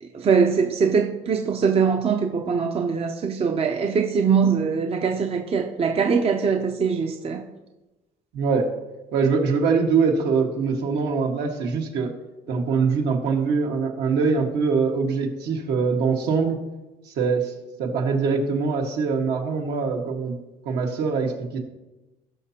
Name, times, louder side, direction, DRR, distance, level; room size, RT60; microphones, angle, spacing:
voice 1, 0.0-7.4, right 6 dB, 35° right, 0.7 m, -22 dB
voice 2, 8.3-8.7 9.1-12.1 12.5-16.6 17.1-17.5 17.8-20.4 20.6-21.6, right 5 dB, 75° right, 1.7 m, -23 dB
17.5 x 5.9 x 2.9 m
cardioid pair, 110°, 17 cm